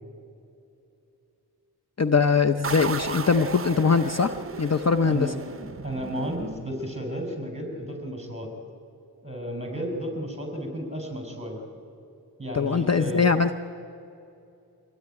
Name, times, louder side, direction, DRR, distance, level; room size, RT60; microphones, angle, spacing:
voice 1, 2.0-5.3 12.5-13.5, left 5 dB, 40° left, 7 dB, 0.7 m, -22 dB
sound 1, 2.6-7.2, right 5 dB, 35° right, 0.6 m, -36 dB
voice 2, 5.0-5.4 5.8-8.5 9.2-11.6 12.4-13.3, equal, 15° right, 3 dB, 5.3 m, -33 dB
24.0 x 16.5 x 9.9 m, 2.7 s
wide cardioid pair, 70°, 39 cm